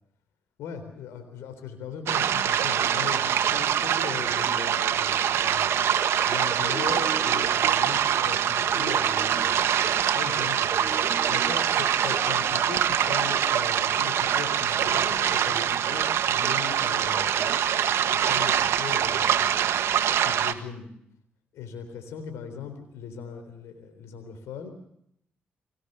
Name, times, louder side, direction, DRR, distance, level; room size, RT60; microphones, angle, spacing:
voice 1, 0.6-5.8 6.3-17.6 18.1-19.7 20.2-20.9 21.5-24.7, left 7 dB, 85° left, 7 dB, 3.8 m, -39 dB
sound 1, 2.1-20.5, right 9 dB, 70° right, 1.6 m, -24 dB
sound 2, 5.4-13.6, right 3 dB, 30° right, 2.5 m, -39 dB
24.0 x 19.0 x 6.8 m, 0.73 s
supercardioid pair, 55°, 5 cm